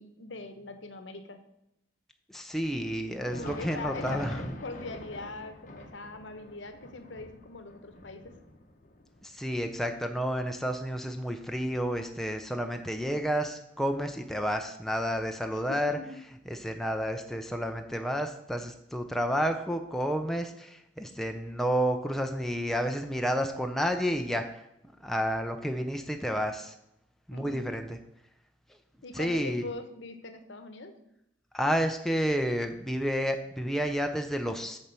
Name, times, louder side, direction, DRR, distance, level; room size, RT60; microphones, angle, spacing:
voice 1, 0.0-1.4 3.2-4.3 4.6-8.4 15.7-16.1 27.3-27.7 29.0-31.0, left 3 dB, 75° left, 8 dB, 0.9 m, -42 dB
voice 2, 2.3-4.4 9.2-16.0 16.5-24.6 25.0-26.7 27.3-28.0 29.1-29.7 31.5-34.8, equal, ahead, 4 dB, 0.5 m, -30 dB
Thunder, 3.1-12.5 12.9-13.0 13.7-13.9 14.9-15.0, left 1 dB, 45° left, 0.9 m, -45 dB
7.0 x 4.4 x 6.8 m, 0.80 s
head